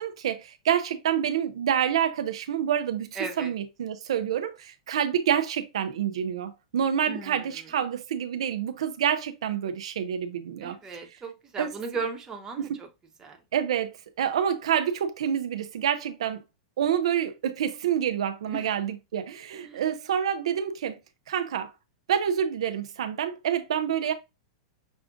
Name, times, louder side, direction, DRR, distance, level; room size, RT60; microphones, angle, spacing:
voice 1, 0.0-10.8 11.6-11.7 12.6-12.8 13.5-16.4 16.8-21.0 21.3-21.7 22.1-24.1, right 9 dB, 80° right, 0.5 m, -27 dB
voice 2, 3.2-3.5 7.0-7.7 10.6-12.9 13.2-13.4 18.5-18.7 19.5-19.8, right 4 dB, 20° right, 1.0 m, -36 dB
6.0 x 2.4 x 2.5 m
hypercardioid pair, 125°, 3 cm